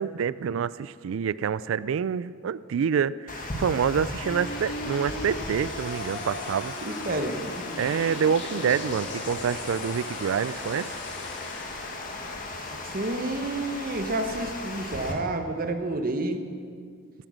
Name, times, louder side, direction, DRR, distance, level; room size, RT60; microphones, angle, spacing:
voice 1, 0.0-6.7 7.8-10.9, right 7 dB, 70° right, 19 dB, 0.3 m, -27 dB
Water, 3.3-15.1, left 2 dB, 40° left, 1.5 m, -37 dB
sound 1, 4.2-14.3, left 2 dB, 55° left, 1.5 m, -39 dB
voice 2, 6.8-7.4 12.2-12.4 12.8-16.5, right 2 dB, 45° right, 7 dB, 1.0 m, -30 dB
14.0 x 8.9 x 6.3 m, 2.2 s
head